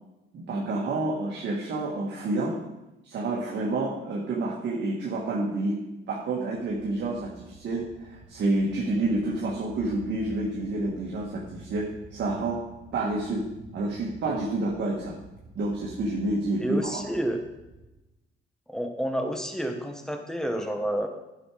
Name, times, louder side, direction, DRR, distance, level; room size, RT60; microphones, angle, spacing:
voice 1, 0.3-2.6 3.0-5.8 6.1-12.6 12.9-13.5 13.7-15.1 15.5-17.0, right 2 dB, 65° right, -4 dB, 1.7 m, -29 dB
sound 1, 6.5-17.9, right 3 dB, 25° right, 1.6 m, -49 dB
voice 2, 16.6-17.4 18.7-21.1, right 1 dB, 5° left, 5 dB, 1.3 m, -29 dB
11.0 x 6.1 x 4.9 m, 0.98 s
cardioid pair, 90°, 20 cm